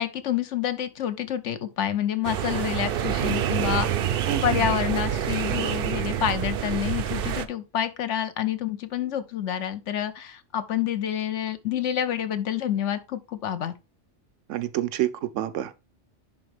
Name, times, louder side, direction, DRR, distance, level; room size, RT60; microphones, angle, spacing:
voice 1, 0.0-3.9 4.4-13.7, left 10 dB, 75° left, 1.1 m, -28 dB
sound 1, 2.2-7.5, right 9 dB, 60° right, 0.6 m, -27 dB
voice 2, 4.3-4.6 14.5-15.8, right 12 dB, 85° right, 1.0 m, -28 dB
10.5 x 3.6 x 3.4 m
omnidirectional pair, 1.2 m